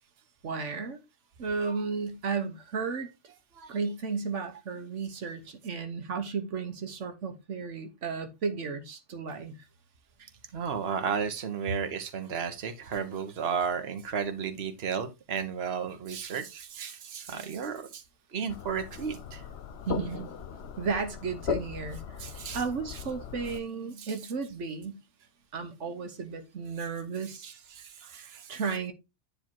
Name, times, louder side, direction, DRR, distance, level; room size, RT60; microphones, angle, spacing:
voice 1, 0.4-1.0 1.4-3.1 3.7-9.6 19.9-20.3 20.8-22.3 22.5-25.0 25.5-27.5 28.1-28.9, right 5 dB, 80° right, 1.4 m, -34 dB
voice 2, 10.5-18.0 18.3-19.4 22.2-22.6 24.0-24.1 27.4-28.5, right 6 dB, 60° right, 1.3 m, -33 dB
sound 1, 18.5-23.6, left 7 dB, 65° left, 1.0 m, -38 dB
9.8 x 3.4 x 4.5 m
omnidirectional pair, 1.2 m